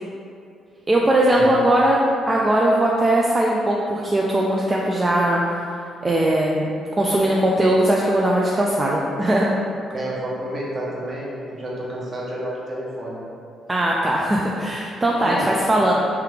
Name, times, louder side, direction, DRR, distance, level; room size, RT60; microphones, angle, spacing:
voice 1, 0.9-2.0 2.3-5.4 6.0-9.5 13.7-15.9, right 1 dB, 20° right, -4 dB, 0.3 m, -19 dB
voice 2, 9.9-13.2 15.2-15.5, right 1 dB, 45° right, -5 dB, 0.8 m, -30 dB
3.4 x 2.4 x 3.1 m, 2.5 s
cardioid pair, 90°, 0 cm